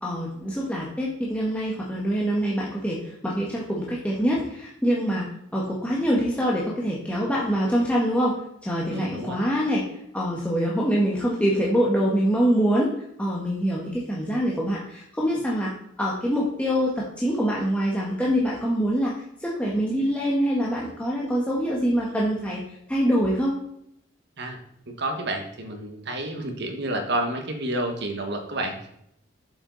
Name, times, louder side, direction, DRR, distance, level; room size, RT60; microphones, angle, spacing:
voice 1, 0.0-5.3 5.5-8.3 8.6-9.8 10.1-12.9 13.2-15.7 16.0-19.1 19.4-22.6 22.9-23.5, equal, 5° left, -5 dB, 1.4 m, -24 dB
voice 2, 8.9-9.4 24.4-24.6 24.9-28.9, right 1 dB, 65° right, 4 dB, 1.5 m, -30 dB
8.7 x 7.3 x 4.0 m, 0.73 s
head